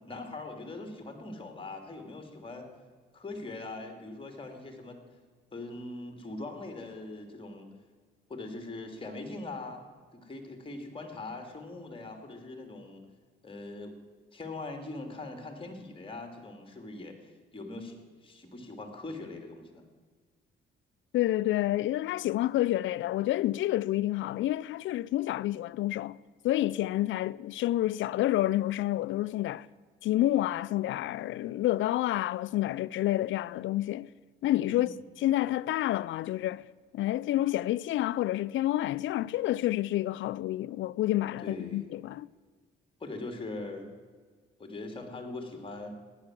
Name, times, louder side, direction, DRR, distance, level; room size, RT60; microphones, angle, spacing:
voice 1, 0.1-2.7 3.1-5.0 5.5-7.7 8.3-9.9 10.1-13.0 13.4-13.9 14.3-19.8 34.7-35.0 41.4-41.9 43.0-43.9 44.6-45.9, left 2 dB, 25° left, 2.8 m, -41 dB
voice 2, 21.1-26.2 26.4-29.7 30.0-34.1 34.4-36.6 36.9-42.3, left 14 dB, 75° left, 0.5 m, -29 dB
15.0 x 11.0 x 7.6 m
cardioid pair, 90°, 20 cm